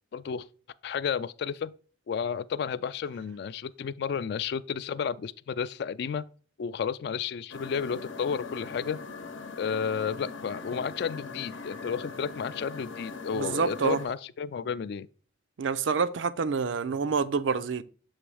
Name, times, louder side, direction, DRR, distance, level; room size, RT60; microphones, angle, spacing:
voice 1, 0.1-0.5 0.8-1.7 2.1-6.3 6.6-9.0 9.6-15.1, left 6 dB, 55° left, 0.3 m, -32 dB
sound 1, 7.5-14.0, left 4 dB, 85° left, 0.9 m, -41 dB
voice 2, 13.3-14.0 15.6-17.8, right 5 dB, 80° right, 0.4 m, -27 dB
7.2 x 3.0 x 4.8 m
head